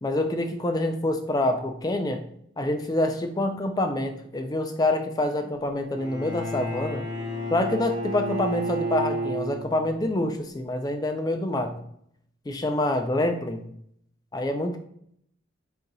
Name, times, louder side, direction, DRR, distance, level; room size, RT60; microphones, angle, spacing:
voice 1, 0.0-2.2 2.6-7.0 7.5-11.8 12.5-13.7 14.3-14.8, left 1 dB, 20° left, 6 dB, 0.3 m, -26 dB
Bowed string instrument, 6.0-10.1, equal, 20° right, 0.7 m, -31 dB
4.0 x 2.8 x 3.9 m, 0.69 s
head